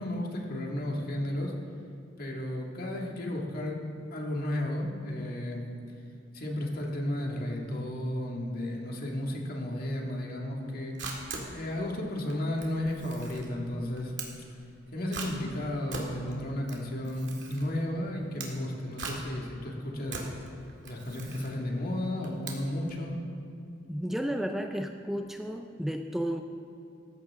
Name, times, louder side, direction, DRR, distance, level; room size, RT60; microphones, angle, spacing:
voice 1, 0.0-1.5 2.2-3.8 4.1-5.6 6.3-10.9 11.5-14.1 14.9-20.2 20.8-23.2, left 1 dB, 50° left, -1 dB, 2.2 m, -33 dB
Camera, 10.6-23.0, right 4 dB, 65° right, 2.3 m, -42 dB
voice 2, 23.9-26.4, equal, ahead, 4 dB, 0.5 m, -32 dB
18.0 x 15.0 x 3.7 m, 2.6 s
head